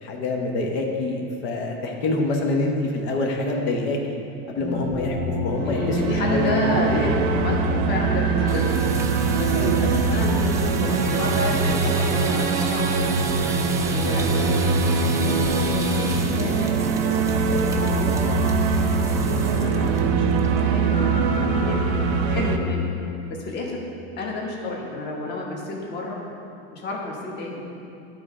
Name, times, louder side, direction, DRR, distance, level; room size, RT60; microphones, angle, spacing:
voice 1, 0.0-4.0 4.5-5.2 5.4-7.1 9.5-9.7 14.0-14.2, left 2 dB, 90° left, 1 dB, 1.1 m, -26 dB
sound 1, 4.6-22.7, left 2 dB, 15° left, 1.3 m, -27 dB
voice 2, 5.6-8.6 9.4-13.2 13.9-16.7 17.1-22.0 22.3-22.8 23.5-23.8 24.2-26.2 26.7-27.7, left 2 dB, 35° left, -2 dB, 1.2 m, -31 dB
sound 2, 5.6-22.6, right 8 dB, 85° right, 0.6 m, -24 dB
sound 3, 8.4-20.0 20.3-20.6 20.9-21.0 21.4-21.8, right 3 dB, 10° right, 0.3 m, -34 dB
11.0 x 3.7 x 4.9 m, 2.7 s
supercardioid pair, 155°, 31 cm